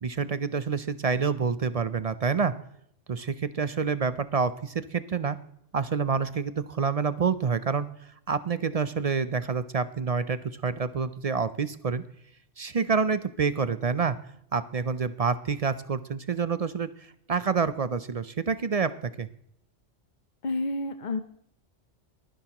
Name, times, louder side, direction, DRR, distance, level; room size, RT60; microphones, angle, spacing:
voice 1, 0.0-2.5 3.1-5.4 5.7-7.9 8.3-12.0 12.6-14.2 14.5-19.3, right 5 dB, 45° right, 14 dB, 0.5 m, -27 dB
voice 2, 20.4-21.2, left 2 dB, 45° left, 9 dB, 0.7 m, -29 dB
22.5 x 10.0 x 2.9 m, 0.69 s
omnidirectional pair, 1.2 m